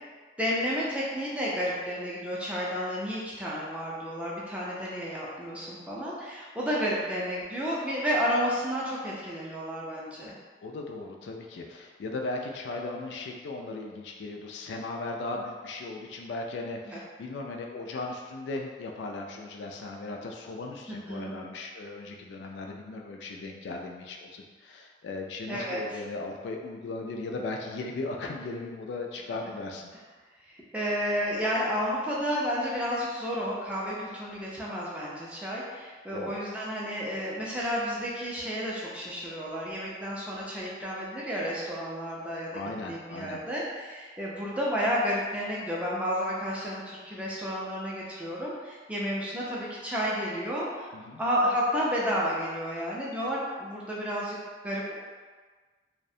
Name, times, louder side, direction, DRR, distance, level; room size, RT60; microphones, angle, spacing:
voice 1, 0.4-10.3 16.9-17.0 20.9-21.3 25.5-26.0 30.4-42.6 42.9-50.9 51.2-54.4 54.6-54.9, equal, 5° right, -6 dB, 0.4 m, -31 dB
voice 2, 10.6-29.9 36.1-36.3 42.5-43.4 50.9-51.2, left 2 dB, 75° left, 1 dB, 0.3 m, -37 dB
2.4 x 2.1 x 2.6 m, 1.4 s
head